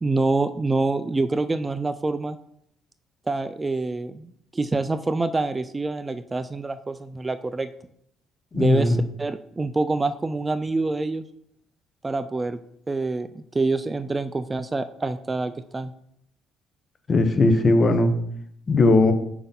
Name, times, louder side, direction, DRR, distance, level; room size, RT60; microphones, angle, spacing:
voice 1, 0.0-2.4 3.3-7.7 8.5-11.2 12.0-12.6 12.9-15.9, right 3 dB, 20° right, 12 dB, 0.3 m, -26 dB
voice 2, 8.5-9.0 17.1-18.1 18.7-19.1, left 2 dB, 35° left, 8 dB, 0.8 m, -18 dB
5.0 x 4.0 x 5.7 m, 0.72 s
cardioid pair, 95°, 0 cm